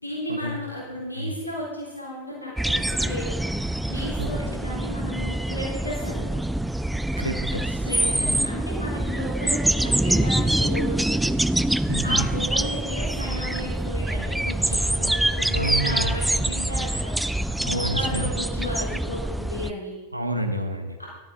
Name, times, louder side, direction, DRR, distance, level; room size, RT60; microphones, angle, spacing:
voice 1, 0.0-3.4 3.9-6.4 7.8-11.4 12.0-17.2 17.7-20.0 21.0-21.1, left 1 dB, 85° left, -4 dB, 3.9 m, -34 dB
sound 1, 2.6-19.7, right 1 dB, 5° right, 0.3 m, -25 dB
voice 2, 3.9-4.5 7.2-7.9 11.9-12.3 15.5-16.2 17.6-18.3 20.1-21.0, right 1 dB, 85° right, 6 dB, 1.3 m, -29 dB
13.5 x 12.5 x 3.9 m, 1.2 s
figure-of-eight pair, 90°, 0 cm